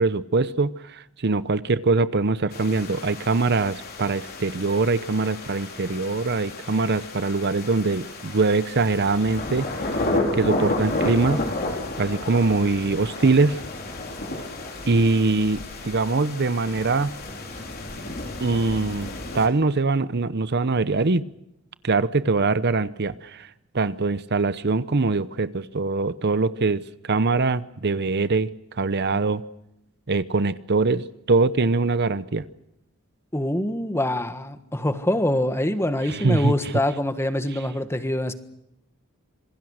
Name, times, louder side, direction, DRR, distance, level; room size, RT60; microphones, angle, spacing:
voice 1, 0.0-10.0 10.3-11.4 12.0-13.6 14.9-17.1 18.4-19.1 19.3-21.2 21.8-23.5 23.7-28.5 28.8-29.4 30.1-32.4 36.0-36.7 37.5-37.6, right 3 dB, 50° right, 15 dB, 0.8 m, -23 dB
sound 1, 2.5-19.5, left 2 dB, 45° left, 4.0 m, -32 dB
voice 2, 33.3-38.3, left 1 dB, 10° left, 10 dB, 1.5 m, -25 dB
26.5 x 21.5 x 6.5 m, 0.82 s
head